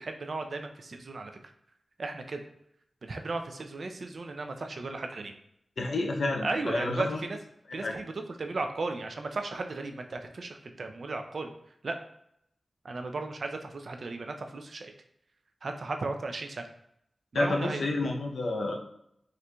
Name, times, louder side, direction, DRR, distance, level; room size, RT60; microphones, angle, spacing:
voice 1, 0.0-1.5 2.0-2.5 3.0-5.3 6.4-7.4 7.7-8.1 8.4-11.5 11.8-12.0 12.8-14.9 15.6-16.7 17.3-17.8, right 3 dB, 70° right, 5 dB, 0.4 m, -35 dB
voice 2, 5.8-7.2 7.8-7.9 17.3-18.8, left 2 dB, 80° left, 2 dB, 0.5 m, -29 dB
4.3 x 2.5 x 2.2 m, 0.75 s
cardioid pair, 45°, 0 cm